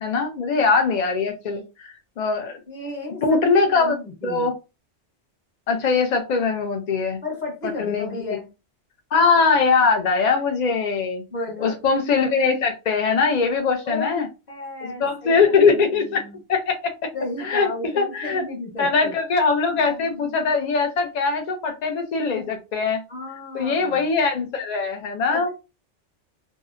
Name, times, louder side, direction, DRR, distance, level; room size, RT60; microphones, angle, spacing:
voice 1, 0.0-2.6 3.2-4.0 4.2-4.5 5.7-7.2 7.8-8.1 9.1-11.2 11.6-14.3 14.8-16.2 16.5-17.1 17.4-17.7 18.0-18.4 18.8-23.0 23.5-25.5, left 4 dB, 60° left, 4 dB, 0.4 m, -21 dB
voice 2, 2.7-4.5 7.2-8.5 11.3-11.7 13.9-16.4 17.1-19.1 19.7-20.4 23.1-24.0 25.3-25.5, left 2 dB, 40° left, -2 dB, 1.2 m, -33 dB
2.7 x 2.0 x 2.4 m, 0.28 s
omnidirectional pair, 1.2 m